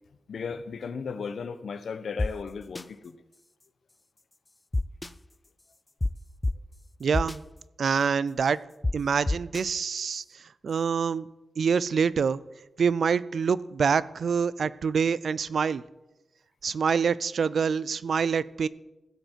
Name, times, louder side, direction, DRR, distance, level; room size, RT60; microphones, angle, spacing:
voice 1, 0.3-3.1, left 5 dB, 85° left, 11 dB, 0.8 m, -35 dB
sound 1, 2.2-2.3 2.7-2.8 4.7-5.1 6.0-6.1 6.4-6.5 7.1-7.4 8.8-8.9 9.3-9.6, left 2 dB, 20° left, 0.3 m, -26 dB
voice 2, 7.0-7.4 7.8-8.6 8.9-10.2 10.6-11.3 11.6-12.4 12.8-15.8 16.6-18.7, right 6 dB, 75° right, 19 dB, 0.4 m, -26 dB
16.0 x 7.8 x 4.5 m, 1.0 s
wide cardioid pair, 125°, 0 cm